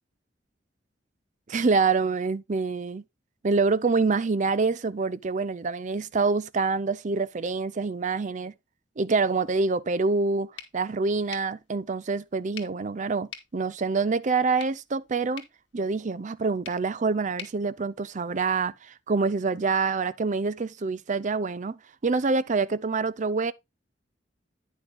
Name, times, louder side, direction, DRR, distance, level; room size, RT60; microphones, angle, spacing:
voice 1, 1.5-3.0 3.4-8.5 9.0-15.4 15.7-23.5, right 4 dB, 40° right, 0.5 m, -26 dB
sound 1, 10.6-18.6, left 8 dB, 85° left, 1.9 m, -48 dB
9.5 x 6.1 x 3.6 m
head